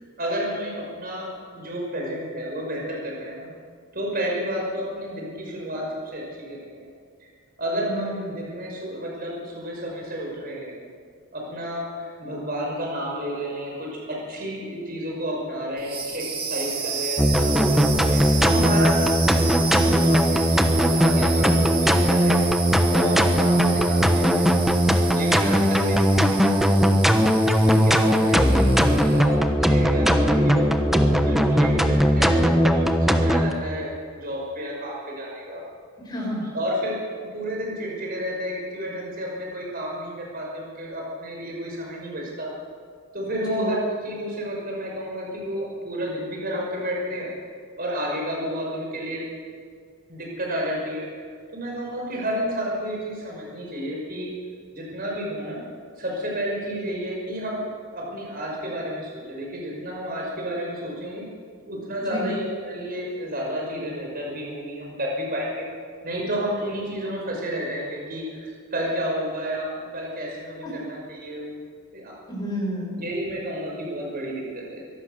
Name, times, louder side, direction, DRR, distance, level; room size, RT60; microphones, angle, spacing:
voice 1, 0.2-3.5 3.9-6.9 7.2-7.3 7.6-10.8 11.3-22.5 22.9-26.9 27.6-35.6 36.5-42.5 43.1-47.3 47.8-49.2 50.1-51.1 51.5-54.3 54.7-55.6 56.0-61.2 61.6-65.7 66.0-71.5 71.9-72.1 73.0-74.8, equal, 40° right, -2 dB, 5.9 m, -31 dB
voice 2, 7.9-8.2 36.1-36.4 43.3-43.7 62.0-62.3 72.3-73.0, right 1 dB, 20° left, -3 dB, 6.7 m, -30 dB
sound 1, 15.8-29.3, right 5 dB, 25° right, 2.4 m, -32 dB
sound 2, 17.2-33.5, equal, ahead, 1.1 m, -19 dB
24.0 x 17.5 x 6.8 m, 2.1 s
head